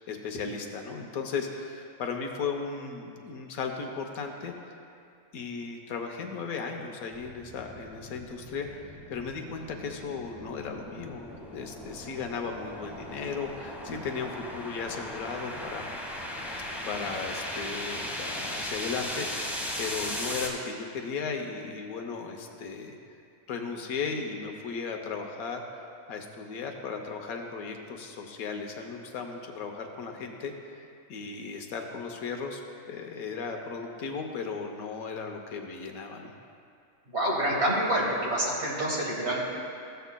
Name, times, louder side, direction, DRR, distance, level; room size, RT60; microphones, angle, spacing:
voice 1, 0.0-4.5 5.3-8.8 9.1-15.9 16.8-23.0 23.5-25.8 26.1-32.6 32.9-36.3, left 5 dB, 80° left, 3 dB, 1.2 m, -36 dB
sound 1, 7.1-20.5, left 1 dB, ahead, 0.8 m, -38 dB
voice 2, 37.1-39.4, right 1 dB, 50° right, -4 dB, 1.8 m, -27 dB
13.5 x 8.0 x 2.2 m, 2.5 s
omnidirectional pair, 1.5 m